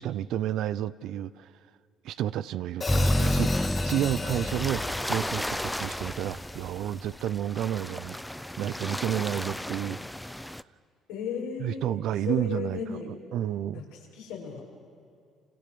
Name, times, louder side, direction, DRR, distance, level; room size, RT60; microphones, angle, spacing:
voice 1, 0.0-1.5 2.0-4.8 5.1-10.0 11.6-12.8 13.3-13.8, right 11 dB, 70° right, 16 dB, 0.7 m, -31 dB
Hi-hat, 2.8-7.0, left 4 dB, 30° left, 1.9 m, -37 dB
sound 1, 2.9-10.6, equal, 5° left, 0.6 m, -31 dB
voice 2, 11.1-11.9 12.2-13.1 13.7-14.6, left 7 dB, 90° left, -1 dB, 6.1 m, -35 dB
27.0 x 26.5 x 7.0 m, 2.4 s
supercardioid pair, 80°, 0 cm